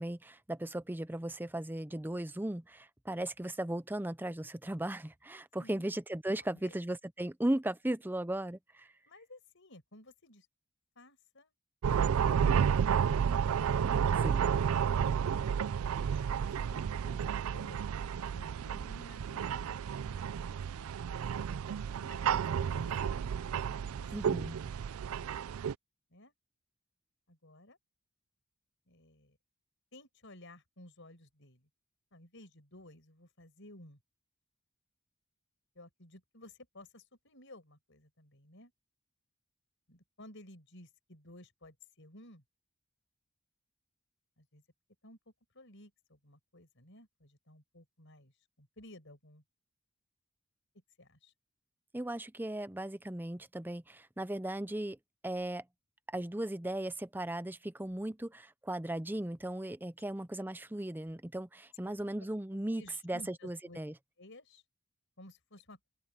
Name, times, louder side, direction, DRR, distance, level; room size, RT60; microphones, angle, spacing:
voice 1, 0.0-8.9 14.2-14.5 24.1-24.6 51.9-55.0 55.2-55.6 56.1-63.9, right 1 dB, 10° right, 0.6 m, -37 dB
voice 2, 9.1-10.5 11.0-11.5 11.9-14.0 15.4-21.0 22.0-23.3 23.9-24.1 24.6-25.1 26.1-26.3 27.3-27.8 28.9-29.4 29.9-31.7 32.1-34.0 35.7-38.7 39.9-42.4 44.4-44.6 45.0-45.2 45.5-49.4 51.0-51.3 61.8-61.9 62.8-63.8 64.2-64.6 65.2-65.8, left 1 dB, 55° left, 5.9 m, -56 dB
sound 1, 11.8-25.7, right 7 dB, 75° right, 0.4 m, -31 dB
open air
head